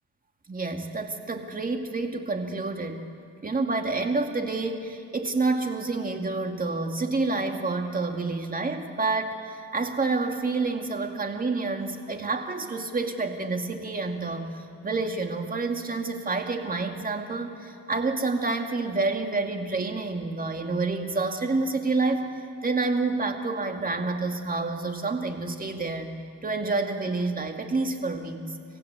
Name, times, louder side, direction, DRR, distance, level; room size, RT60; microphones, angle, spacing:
voice 1, 0.5-3.0 3.4-14.5 14.8-22.3 22.6-26.2 26.4-28.4, right 3 dB, 30° right, 4 dB, 2.4 m, -28 dB
26.5 x 15.5 x 8.3 m, 2.4 s
cardioid pair, 90°, 30 cm